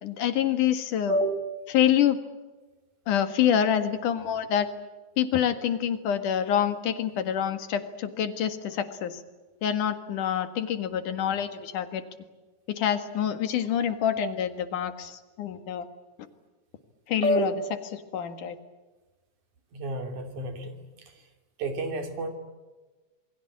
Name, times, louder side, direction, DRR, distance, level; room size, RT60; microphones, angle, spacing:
voice 1, 0.0-1.2 1.7-2.2 3.1-4.7 5.2-9.2 9.6-12.0 12.7-15.9 17.1-17.5 17.9-18.6, left 9 dB, 90° left, 9 dB, 3.3 m, -26 dB
voice 2, 1.1-1.4 17.2-17.6 19.7-20.8 21.6-22.3, right 1 dB, 75° right, 6 dB, 4.5 m, -28 dB
28.0 x 21.5 x 8.6 m, 1.2 s
omnidirectional pair, 3.5 m